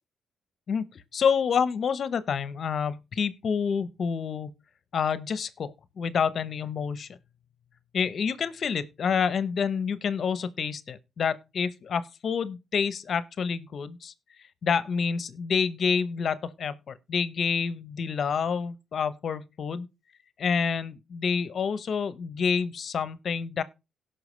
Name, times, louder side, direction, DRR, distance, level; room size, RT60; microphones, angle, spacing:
voice 1, 0.7-4.5 4.9-7.2 7.9-14.1 14.6-19.9 20.4-23.6, left 6 dB, 55° left, 0.9 m, -28 dB
17.5 x 5.8 x 3.2 m
cardioid pair, 90°, 0 cm